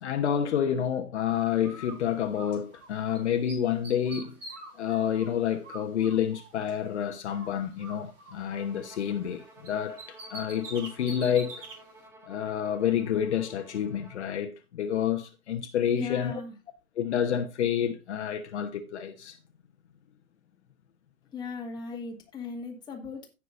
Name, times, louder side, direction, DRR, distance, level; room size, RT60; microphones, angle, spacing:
voice 1, 0.0-4.4 4.7-11.6 12.3-16.4 17.0-19.4, left 9 dB, 50° left, 1.1 m, -29 dB
Bird, 1.6-3.2 3.5-6.9 7.3-9.4 9.7-11.8, right 2 dB, 55° right, 4.5 m, -45 dB
Bowed string instrument, 8.5-14.3, right 2 dB, 5° right, 1.2 m, -53 dB
voice 2, 15.9-16.5 21.3-23.3, left 5 dB, 10° left, 1.9 m, -37 dB
16.5 x 6.1 x 2.5 m
figure-of-eight pair, 130°, 44 cm